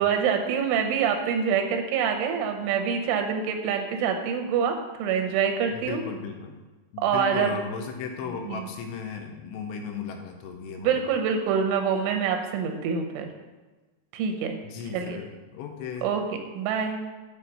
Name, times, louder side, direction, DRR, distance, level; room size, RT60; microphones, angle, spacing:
voice 1, 0.0-6.0 7.0-7.5 8.4-8.6 10.8-13.3 14.1-14.6 14.9-15.2 16.0-16.2 16.6-17.0, right 7 dB, 85° right, 4 dB, 3.3 m, -26 dB
voice 2, 5.7-6.6 6.9-11.0 14.6-16.1, left 6 dB, 80° left, 3 dB, 2.8 m, -36 dB
9.0 x 4.3 x 6.7 m, 1.2 s
omnidirectional pair, 5.3 m